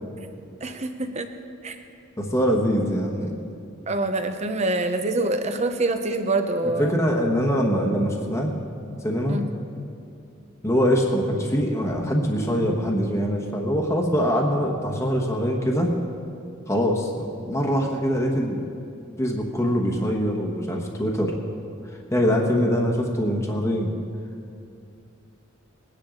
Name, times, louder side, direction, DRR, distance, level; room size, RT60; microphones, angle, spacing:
voice 1, 0.6-1.3 1.6-1.8 3.9-7.0 9.3-9.4, right 2 dB, 35° right, 7 dB, 0.8 m, -25 dB
voice 2, 2.2-3.3 6.6-8.5 9.0-9.4 10.6-15.9 16.7-18.6 19.2-21.3 22.1-23.9, equal, 15° left, 0 dB, 1.2 m, -23 dB
21.0 x 10.0 x 3.8 m, 2.5 s
head